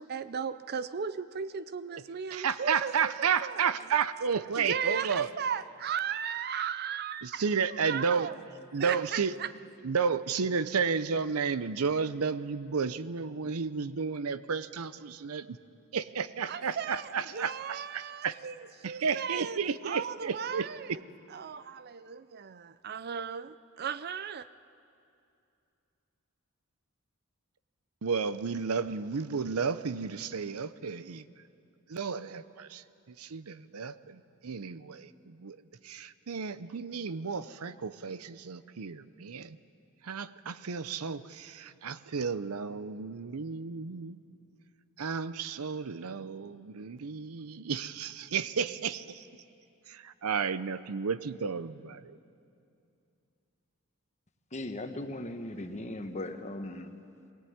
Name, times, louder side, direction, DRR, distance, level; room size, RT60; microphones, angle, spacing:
voice 1, 0.0-3.7 4.6-7.4 7.7-8.4 8.7-9.5 16.5-21.0 21.3-24.5, right 7 dB, 45° right, 14 dB, 0.5 m, -36 dB
voice 2, 2.3-5.3 7.2-8.3 8.7-9.3 9.8-15.6 15.9-18.4 18.8-20.7 28.0-31.3 31.9-35.6 35.8-39.6 40.0-44.2 45.0-49.3 49.9-52.2, right 6 dB, 85° right, 15 dB, 0.7 m, -32 dB
voice 3, 54.5-57.0, left 1 dB, 30° left, 6 dB, 1.2 m, -38 dB
21.0 x 18.0 x 9.5 m, 2.6 s
head